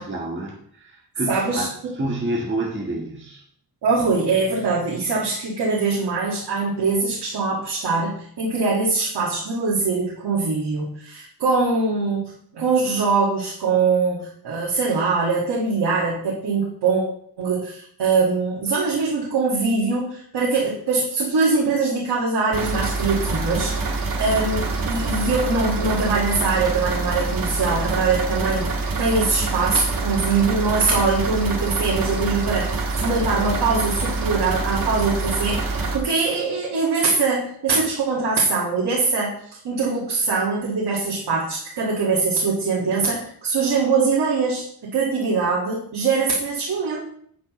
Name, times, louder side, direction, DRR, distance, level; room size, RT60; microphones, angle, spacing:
voice 1, 0.0-1.7 2.0-3.4, right 1 dB, 30° right, -2 dB, 1.5 m, -28 dB
voice 2, 1.3-1.7 3.8-12.2 12.5-17.0 17.4-47.0, right 4 dB, 90° right, -6 dB, 2.1 m, -22 dB
sound 1, 22.5-36.0, right 3 dB, 55° right, 1.8 m, -25 dB
9.8 x 8.6 x 3.2 m, 0.64 s
wide cardioid pair, 155°, 40 cm